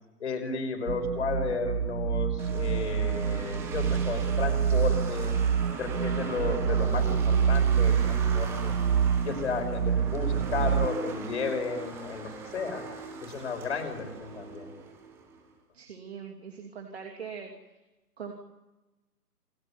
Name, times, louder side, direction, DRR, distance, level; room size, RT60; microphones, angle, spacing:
voice 1, 0.2-5.4 5.8-8.7 9.2-12.9 13.2-14.8, left 4 dB, 45° left, 5 dB, 6.0 m, -33 dB
sound 1, 0.9-10.9, right 7 dB, 85° right, 0.9 m, -27 dB
sound 2, 2.4-15.4, right 4 dB, 5° right, 1.1 m, -40 dB
voice 2, 15.7-17.5 18.2-18.3, right 6 dB, 40° right, 3 dB, 2.9 m, -41 dB
28.5 x 16.0 x 9.9 m, 1.0 s
figure-of-eight pair, 150°, 47 cm